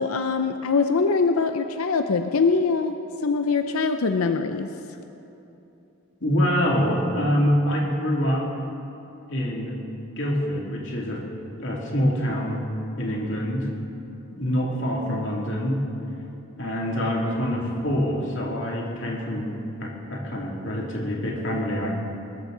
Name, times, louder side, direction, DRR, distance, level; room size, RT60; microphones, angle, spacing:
voice 1, 0.0-3.0 3.2-4.7, left 4 dB, 80° left, 7 dB, 0.6 m, -23 dB
voice 2, 6.2-8.5 9.3-9.8 10.2-11.2 11.6-12.6 13.0-13.7 14.3-15.8 16.6-21.9, equal, 60° left, -2 dB, 2.6 m, -25 dB
21.5 x 13.5 x 3.9 m, 2.9 s
head